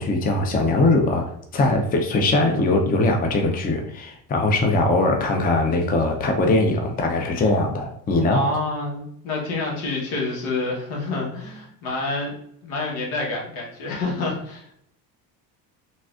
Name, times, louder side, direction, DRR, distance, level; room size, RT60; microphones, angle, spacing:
voice 1, 0.0-8.4, left 2 dB, 20° left, 3 dB, 0.5 m, -21 dB
voice 2, 8.3-14.7, left 2 dB, 75° left, -1 dB, 1.3 m, -28 dB
3.9 x 2.4 x 2.4 m, 0.70 s
supercardioid pair, 85°, 49 cm